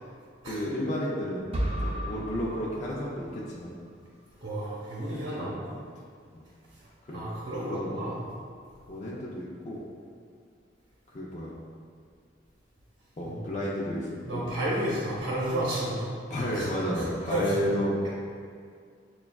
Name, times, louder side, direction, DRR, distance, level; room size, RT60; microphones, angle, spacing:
voice 1, 0.4-1.5 1.8-3.7 5.3-5.8 6.3-6.4 7.1-7.2 7.7-8.1 8.9-9.8 11.1-11.5 13.2-14.5 16.3-18.1, equal, 40° left, -6 dB, 0.4 m, -32 dB
sound 1, 1.5-3.6, right 1 dB, 30° right, 0.5 m, -33 dB
voice 2, 4.4-5.6 7.1-8.2 13.3-13.4 14.2-16.1 16.5-16.7 17.0-17.6, right 1 dB, 65° right, -8 dB, 0.8 m, -31 dB
6.8 x 2.3 x 2.3 m, 2.2 s
head